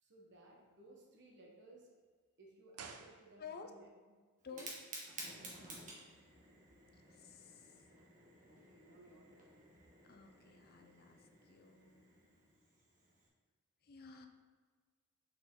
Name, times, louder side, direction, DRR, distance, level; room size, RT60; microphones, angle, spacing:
voice 1, 0.0-1.9 2.4-3.9 4.5-4.6 5.4-5.6 8.5-9.6, right 2 dB, 55° right, -1 dB, 1.2 m, -61 dB
sound 1, 2.7-3.8 4.1-4.2, right 5 dB, 85° right, 0.6 m, -53 dB
voice 2, 3.4-3.7 4.4-4.7 6.9-7.9 10.0-12.1 13.8-14.3, left 6 dB, 45° left, 5 dB, 0.5 m, -53 dB
Fire, 4.4-13.3, right 2 dB, 35° right, 1.1 m, -54 dB
6.3 x 4.3 x 3.8 m, 1.5 s
head